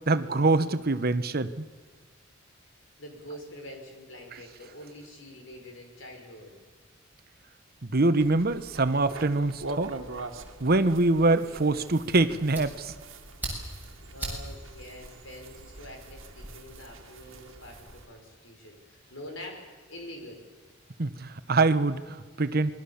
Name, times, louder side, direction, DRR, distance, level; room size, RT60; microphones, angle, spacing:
voice 1, 0.1-1.6 7.8-9.9 10.6-12.9 21.0-22.7, right 2 dB, 50° right, 11 dB, 1.1 m, -24 dB
voice 2, 3.0-6.5 13.7-13.8 14.1-20.5, left 1 dB, 70° left, 2 dB, 5.6 m, -45 dB
sound 1, 8.2-18.1, right 2 dB, 80° right, 1.9 m, -44 dB
Fire, 12.1-16.5, right 2 dB, 10° right, 7.5 m, -41 dB
27.5 x 21.5 x 7.2 m, 1.5 s
head